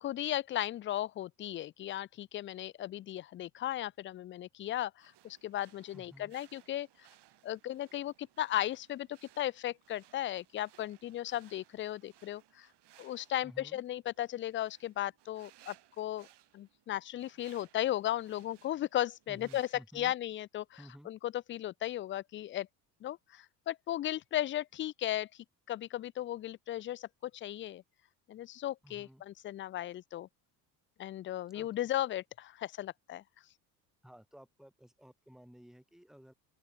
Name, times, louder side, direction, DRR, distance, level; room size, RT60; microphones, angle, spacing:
voice 1, 0.0-7.1 7.4-12.7 13.0-16.3 16.5-19.7 19.9-20.8 21.1-22.7 23.0-25.3 25.7-27.8 28.3-30.3 31.0-33.2, left 13 dB, 25° left, 0.4 m, -36 dB
sound 1, 5.0-19.8, right 13 dB, 55° right, 6.3 m, -64 dB
voice 2, 5.9-6.3 13.4-13.8 19.3-20.1 20.8-21.1 28.8-29.2 31.5-31.9 34.0-36.3, equal, ahead, 1.9 m, -55 dB
open air
hypercardioid pair, 60°, 50 cm